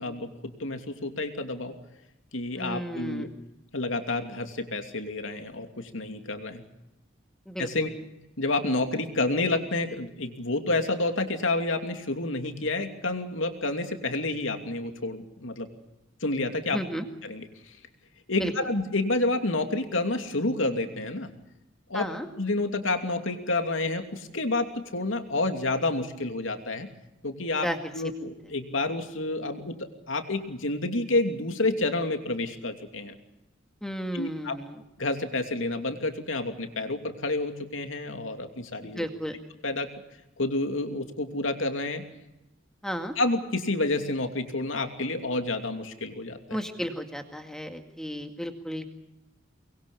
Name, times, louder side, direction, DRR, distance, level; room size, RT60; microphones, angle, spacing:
voice 1, 0.0-1.7 2.3-3.3 3.7-6.6 7.6-7.9 8.4-15.7 16.2-16.8 17.2-17.7 18.3-21.3 21.9-22.1 22.4-26.9 27.2-27.7 27.9-33.2 34.1-34.5 35.0-39.1 39.6-39.9 40.4-42.0 43.2-46.6, left 2 dB, 85° left, 6 dB, 2.8 m, -29 dB
voice 2, 2.6-3.3 7.5-7.7 16.7-17.0 18.4-18.5 21.9-22.3 27.5-27.9 33.8-34.8 38.9-39.4 42.8-43.2 46.5-48.8, equal, 5° left, 5 dB, 2.0 m, -33 dB
24.5 x 21.5 x 6.9 m, 0.95 s
head